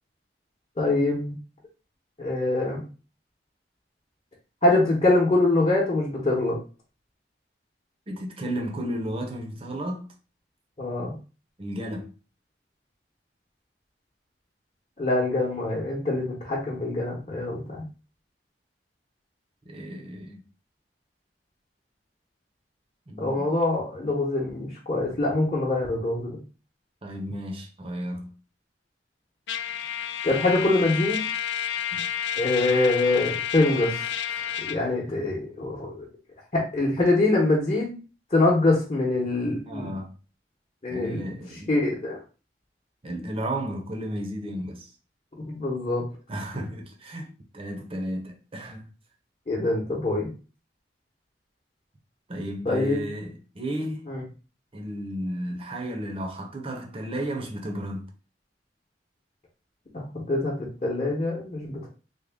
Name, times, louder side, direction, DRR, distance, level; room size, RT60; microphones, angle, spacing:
voice 1, 0.8-1.3 2.2-2.8 4.6-6.6 10.8-11.1 15.0-17.8 23.2-26.3 30.2-31.2 32.4-36.1 36.5-37.9 38.3-39.9 40.8-42.2 45.5-46.1 49.5-50.3 52.6-53.0 54.1-54.2 59.9-60.6 60.8-61.9, left 2 dB, 35° left, 0.9 m, -24 dB
voice 2, 8.1-10.1 11.0-11.2 11.6-12.1 19.7-20.4 23.1-23.5 27.0-28.3 31.9-32.1 39.7-40.1 40.9-41.8 43.0-44.9 46.3-48.9 52.3-54.0 54.7-58.1, right 1 dB, 30° right, 0.6 m, -33 dB
Trumpet, 29.5-34.8, left 9 dB, 75° left, 0.3 m, -30 dB
3.6 x 2.2 x 3.4 m
head